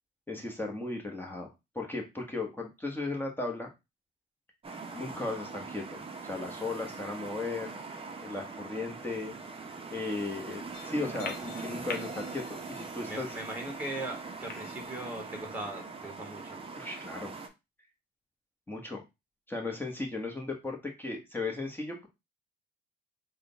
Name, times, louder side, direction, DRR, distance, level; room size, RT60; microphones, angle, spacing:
voice 1, 0.3-1.5 1.7-3.7 4.9-7.7 8.2-9.4 9.9-13.3 16.7-17.3 18.7-19.0 19.5-22.1, left 3 dB, 10° left, 0 dB, 1.2 m, -36 dB
sound 1, 4.6-17.5, right 4 dB, 30° right, 0.7 m, -42 dB
sound 2, 10.7-15.7, left 5 dB, 50° left, 0.9 m, -46 dB
voice 2, 13.1-16.6, right 1 dB, 10° right, 2 dB, 1.4 m, -39 dB
3.7 x 2.3 x 3.9 m, 0.24 s
cardioid pair, 90°, 20 cm